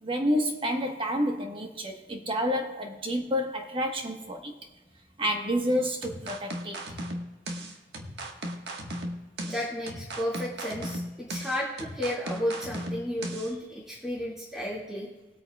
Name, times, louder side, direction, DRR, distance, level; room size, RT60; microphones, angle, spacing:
voice 1, 0.0-4.5 5.2-7.0, equal, 30° right, 1.2 m, -29 dB
sound 1, 6.0-13.5, right 1 dB, 70° right, 1.5 m, -36 dB
voice 2, 9.4-15.1, equal, 5° right, 2.1 m, -33 dB
20.0 x 8.9 x 2.3 m
head